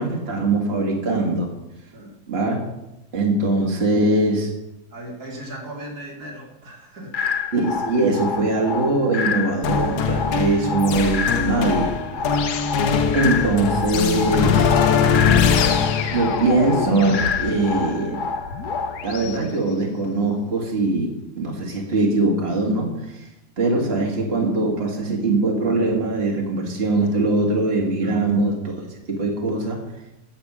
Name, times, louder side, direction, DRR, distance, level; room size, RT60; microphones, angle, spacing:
voice 1, 0.0-1.5 2.3-2.6 3.1-4.5 7.5-12.0 13.1-14.8 16.1-18.3 19.0-23.3 23.6-28.8 29.1-29.8, right 2 dB, 40° right, -1 dB, 2.1 m, -22 dB
voice 2, 4.9-7.2 10.2-10.3 12.1-12.3 28.0-28.2, right 1 dB, 65° right, 0 dB, 2.4 m, -37 dB
sound 1, 7.1-19.1, left 5 dB, 55° left, 0.5 m, -28 dB
sound 2, 9.6-19.4, left 6 dB, 75° left, 1.3 m, -22 dB
10.5 x 7.3 x 6.1 m, 0.92 s
omnidirectional pair, 1.8 m